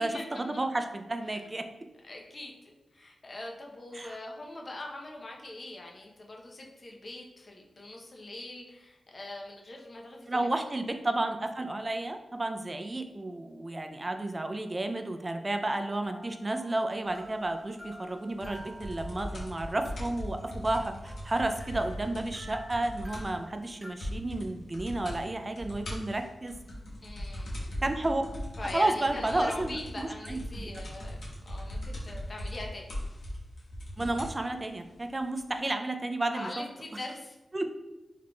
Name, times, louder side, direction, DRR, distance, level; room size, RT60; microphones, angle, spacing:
voice 1, 0.0-1.6 3.9-4.2 10.3-26.6 27.8-28.2 28.7-30.7 34.0-36.6 37.5-37.7, right 2 dB, 30° right, 6 dB, 0.3 m, -32 dB
voice 2, 2.0-10.5 27.0-27.6 28.6-31.2 31.5-32.9 36.3-37.4, left 2 dB, 45° left, 0 dB, 0.7 m, -42 dB
sound 1, 16.0-23.9, equal, 5° right, 1.0 m, -51 dB
sound 2, 18.4-23.4 23.7-23.8 24.0-24.5 24.7-25.2 25.6-34.4 35.2-35.3, equal, 80° left, 1.0 m, -39 dB
3.7 x 3.4 x 2.2 m, 1.0 s
wide cardioid pair, 80°, 0 cm